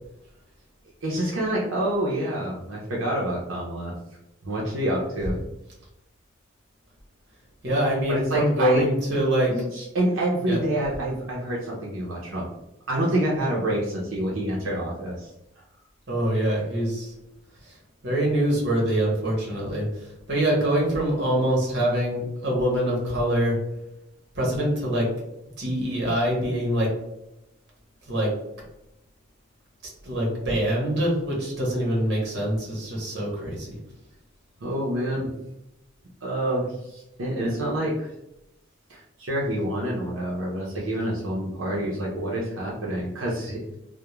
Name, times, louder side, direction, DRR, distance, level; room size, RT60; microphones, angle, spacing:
voice 1, 1.0-3.9 4.4-5.4 8.1-8.9 9.5-12.5 12.9-15.3 34.6-35.3 36.2-38.1 38.9-43.8, right 1 dB, 80° right, -4 dB, 0.6 m, -27 dB
voice 2, 7.6-9.5 10.5-10.6 16.1-17.1 18.0-19.9 20.3-23.6 24.4-25.1 25.6-26.9 28.1-28.3 30.0-33.7, right 1 dB, 55° right, -2 dB, 0.9 m, -24 dB
2.3 x 2.1 x 2.9 m, 0.88 s
head